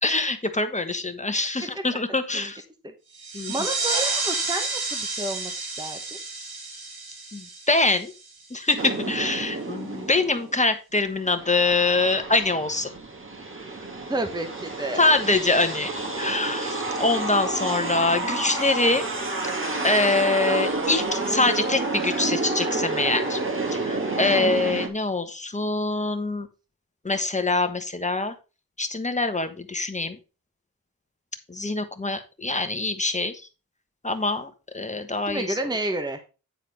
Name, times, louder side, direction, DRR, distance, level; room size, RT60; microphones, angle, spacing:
voice 1, 0.0-2.6 3.3-3.5 7.3-8.1 8.5-12.9 15.0-15.9 16.2-19.0 19.8-23.4 23.8-26.5 27.0-28.3 28.8-30.1 31.5-33.3 34.0-35.5, left 2 dB, 20° left, 8 dB, 1.3 m, -24 dB
sound 1, 3.1-8.5, right 3 dB, 85° right, 2.5 m, -30 dB
voice 2, 3.5-5.5 5.8-6.0 14.1-15.0 24.3-24.6 35.3-36.2, right 2 dB, 10° right, 6 dB, 1.1 m, -30 dB
sound 2, 8.8-10.6 11.1-24.9, right 2 dB, 35° right, 2.1 m, -29 dB
9.4 x 4.2 x 5.3 m, 0.32 s
wide cardioid pair, 75°, 36 cm